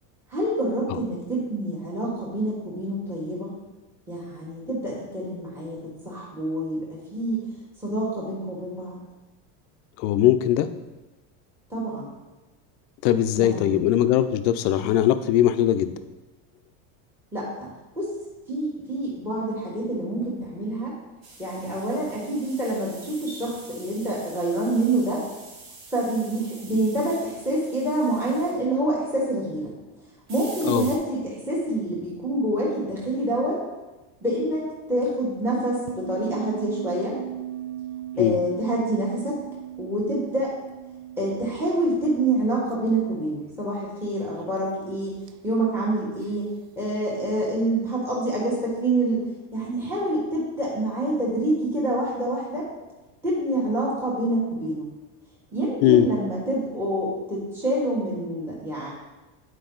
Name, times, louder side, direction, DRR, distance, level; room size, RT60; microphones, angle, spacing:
voice 1, 0.3-3.6 4.1-7.5 7.8-9.0 11.7-12.1 13.4-13.8 17.3-17.7 17.9-18.1 18.5-20.9 21.4-25.2 25.9-29.7 30.3-33.6 34.2-37.2 38.2-39.4 39.8-40.5 41.2-45.2 45.4-46.5 46.8-52.7 53.2-54.9 55.5-58.9, right 1 dB, 5° right, -6 dB, 1.4 m, -27 dB
voice 2, 10.0-10.7 13.0-15.9 30.6-30.9 38.2-38.4 55.8-56.1, left 11 dB, 50° left, 10 dB, 0.5 m, -20 dB
sound 1, 21.2-28.6 30.3-31.0, right 3 dB, 40° right, 1.3 m, -45 dB
sound 2, 35.9-43.1 43.4-43.5 44.3-44.7 45.1-45.3 46.2-46.3, right 12 dB, 90° right, 0.6 m, -38 dB
8.6 x 4.8 x 3.9 m, 1.1 s
cardioid pair, 165°, 41 cm